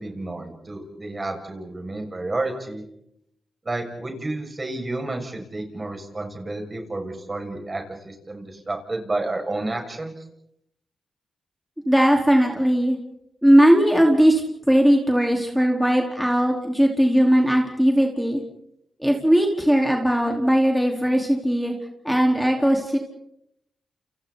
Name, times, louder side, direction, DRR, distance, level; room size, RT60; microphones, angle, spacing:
voice 1, 0.0-2.8 3.7-10.1, right 2 dB, 35° right, 3 dB, 6.8 m, -30 dB
voice 2, 11.9-13.0 13.4-14.4 14.7-18.4 19.0-21.7 22.0-23.0, equal, 5° right, 1 dB, 4.5 m, -18 dB
30.0 x 29.5 x 4.3 m, 0.77 s
supercardioid pair, 45°, 0 cm